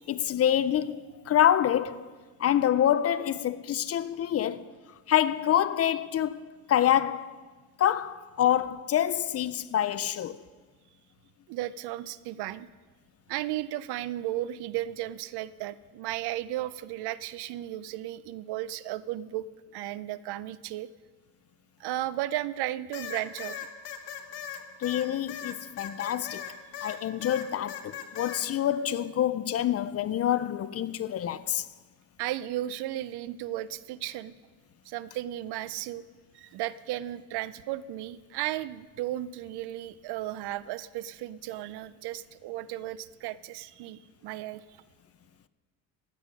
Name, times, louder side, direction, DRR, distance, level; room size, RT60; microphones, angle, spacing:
voice 1, 0.1-2.1 2.4-4.7 5.1-7.4 7.8-10.4 24.8-26.4 26.8-31.7, left 10 dB, 40° left, 0.4 m, -26 dB
voice 2, 11.5-12.7 13.3-19.5 19.7-20.9 21.8-23.7 26.9-27.0 32.2-34.3 34.9-36.0 36.3-44.6, right 14 dB, 75° right, 0.6 m, -35 dB
sound 1, 22.9-27.0 27.2-28.4, left 9 dB, 75° left, 1.5 m, -38 dB
15.0 x 10.0 x 5.2 m
cardioid pair, 125°, 40 cm